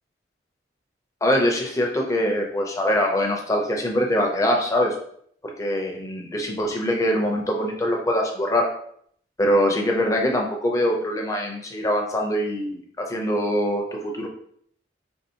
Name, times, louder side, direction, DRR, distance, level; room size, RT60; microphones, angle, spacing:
voice 1, 1.2-4.9 5.4-8.7 9.4-14.3, equal, 20° left, 1 dB, 0.5 m, -23 dB
3.7 x 2.7 x 2.8 m, 0.65 s
head